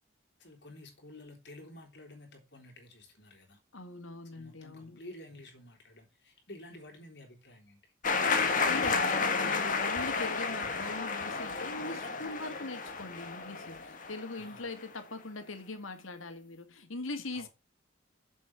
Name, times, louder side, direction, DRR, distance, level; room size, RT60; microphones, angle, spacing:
voice 1, 0.4-3.6 4.3-7.9 14.3-14.7 17.3-17.5, left 1 dB, 55° left, 3.5 m, -51 dB
voice 2, 3.7-5.0 8.6-17.5, left 2 dB, 85° left, 2.0 m, -41 dB
sound 1, 8.0-14.7, left 4 dB, 40° left, 1.5 m, -31 dB
7.4 x 7.3 x 6.1 m
head